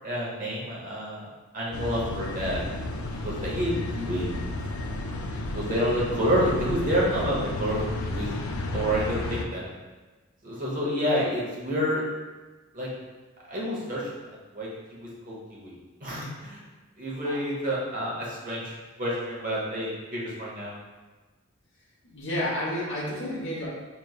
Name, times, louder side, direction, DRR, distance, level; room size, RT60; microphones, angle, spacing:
voice 1, 0.0-1.2 1.5-2.6 3.2-4.3 5.3-8.3 8.7-9.7 10.4-12.0 12.7-12.9 13.5-14.1 14.5-15.7 16.0-16.6 17.0-18.7 19.0-20.7, equal, 40° right, -5 dB, 1.0 m, -29 dB
sound 1, 1.7-9.4, left 2 dB, 90° left, 0.4 m, -32 dB
voice 2, 22.0-23.7, left 1 dB, 60° left, -5 dB, 1.1 m, -30 dB
5.1 x 3.1 x 2.4 m, 1.2 s
head